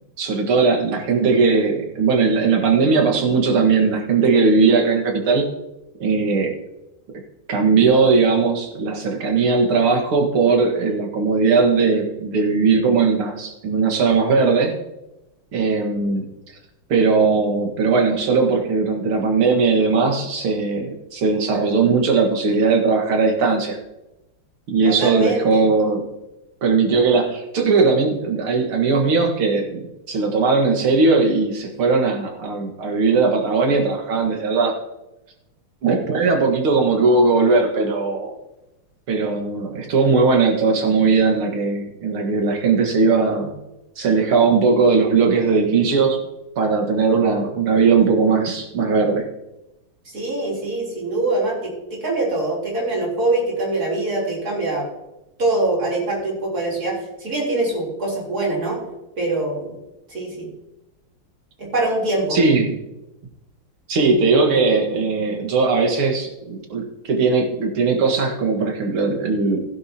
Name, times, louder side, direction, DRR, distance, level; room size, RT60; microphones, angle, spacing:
voice 1, 0.2-5.5 6.0-6.5 7.5-14.7 15.5-16.2 16.9-23.8 24.7-26.0 26.6-34.8 35.8-38.3 39.1-43.5 44.0-46.2 46.6-49.2 62.3-62.8 63.9-69.6, right 4 dB, 75° right, 2 dB, 2.5 m, -18 dB
voice 2, 24.8-25.6 50.1-54.9 55.4-58.8 59.2-59.7 60.1-60.5 61.6-62.4, right 2 dB, 40° right, -3 dB, 4.1 m, -23 dB
16.0 x 10.5 x 2.9 m, 0.95 s
omnidirectional pair, 2.4 m